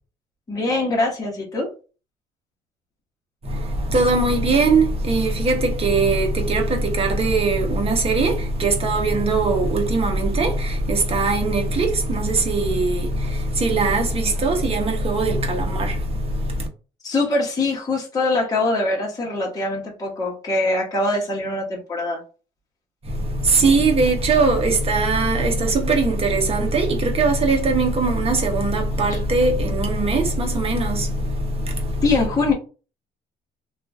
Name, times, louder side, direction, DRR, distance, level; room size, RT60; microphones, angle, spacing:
voice 1, 0.5-1.7 17.0-22.2 29.1-29.2 32.0-32.5, left 2 dB, 20° left, 1.1 m, -23 dB
voice 2, 3.4-16.7 23.0-32.0, right 3 dB, 35° right, 1.0 m, -20 dB
2.9 x 2.4 x 2.4 m
cardioid pair, 110°, 17 cm